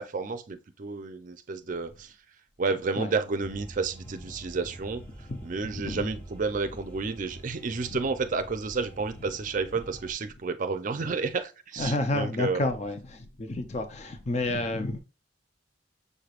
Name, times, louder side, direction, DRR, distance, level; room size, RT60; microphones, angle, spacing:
voice 1, 0.0-2.1 2.6-5.0 5.4-12.7, right 4 dB, 45° right, 0.5 m, -31 dB
sound 1, 3.4-10.1, right 1 dB, 10° left, 1.6 m, -46 dB
voice 2, 5.3-6.1 11.8-15.0, left 2 dB, 35° left, 0.5 m, -30 dB
6.5 x 3.3 x 2.4 m
head